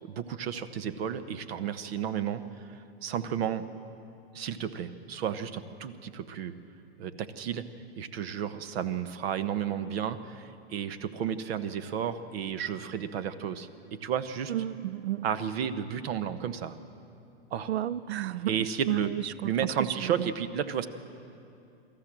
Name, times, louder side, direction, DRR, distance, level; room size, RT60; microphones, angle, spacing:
voice 1, 0.0-3.7 4.3-6.5 7.0-7.7 8.0-14.5 15.2-16.8 17.5-17.7 18.4-19.1 19.4-20.9, right 8 dB, 65° right, 12 dB, 1.2 m, -32 dB
voice 2, 14.5-15.2 17.7-18.5 18.9-19.1 19.4-19.5, right 13 dB, 85° right, 18 dB, 0.5 m, -31 dB
25.5 x 13.5 x 7.6 m, 2.6 s
hypercardioid pair, 115°, 32 cm